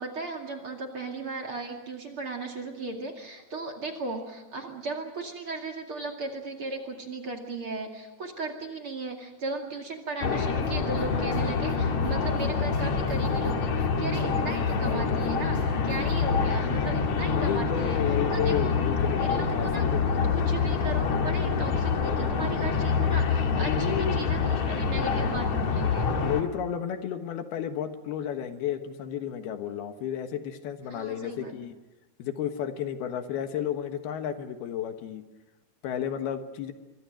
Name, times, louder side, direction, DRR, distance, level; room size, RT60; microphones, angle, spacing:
voice 1, 0.0-18.7 19.2-26.1 30.9-31.5, right 3 dB, 40° right, 2 dB, 2.8 m, -36 dB
sound 1, 10.2-26.4, left 5 dB, 55° left, 2.8 m, -26 dB
sound 2, 10.6-11.1 11.3-11.4 11.7-11.8 12.0-12.5 12.7-13.9 14.1-14.2 14.5-16.2, equal, 15° left, 5.7 m, -46 dB
voice 2, 14.5-15.3 17.3-20.0 23.5-24.3 24.7-25.5 26.2-31.8 32.2-35.2 35.8-36.7, left 9 dB, 85° left, 8 dB, 3.3 m, -32 dB
25.0 x 23.5 x 6.3 m, 1.1 s
omnidirectional pair, 4.4 m